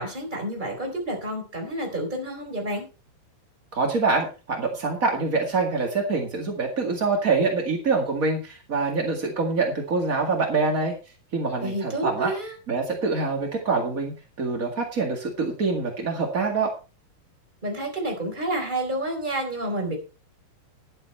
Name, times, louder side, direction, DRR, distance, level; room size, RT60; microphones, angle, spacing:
voice 1, 0.0-2.8 11.6-12.5 17.6-20.0, right 1 dB, 10° right, 1 dB, 3.6 m, -29 dB
voice 2, 3.7-10.9 11.3-12.3 12.7-16.7, right 4 dB, 50° right, 1 dB, 1.0 m, -25 dB
11.5 x 11.0 x 4.3 m, 0.32 s
omnidirectional pair, 5.0 m